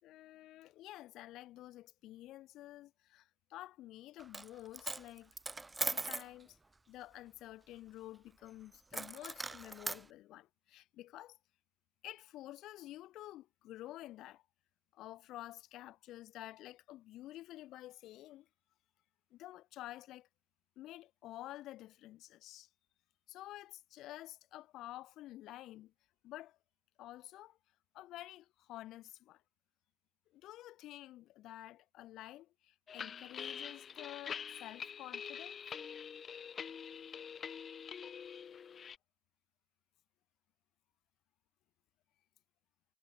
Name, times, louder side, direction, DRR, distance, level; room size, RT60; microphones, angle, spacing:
voice 1, 0.0-5.3 5.8-6.6 6.9-11.4 12.0-14.4 14.9-18.5 19.3-20.3 20.8-22.7 23.3-25.9 26.2-26.6 27.0-27.6 27.9-29.4 30.3-35.6, left 15 dB, 90° left, 4.8 m, -50 dB
Coin (dropping), 4.2-4.5 4.7-6.3 8.9-10.0, right 3 dB, 20° right, 2.1 m, -39 dB
sound 1, 32.9-39.0, left 7 dB, 50° left, 1.3 m, -45 dB
cardioid pair, 90°, 0 cm